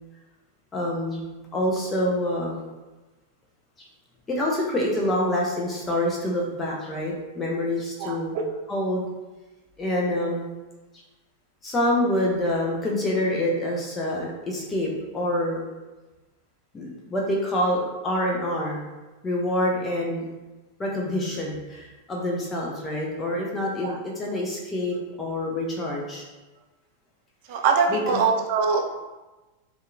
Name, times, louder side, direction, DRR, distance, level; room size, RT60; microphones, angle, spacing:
voice 1, 0.7-1.3 1.5-2.6 3.8-3.9 4.3-8.3 8.7-9.0 9.8-10.5 11.6-15.7 16.7-18.9 19.2-20.2 20.8-26.2 27.9-28.2, left 1 dB, 20° left, -2 dB, 0.4 m, -26 dB
voice 2, 8.0-8.4 23.8-24.0 27.5-28.8, right 5 dB, 50° right, 2 dB, 0.4 m, -23 dB
2.7 x 2.2 x 2.5 m, 1.1 s
figure-of-eight pair, 90°, 0 cm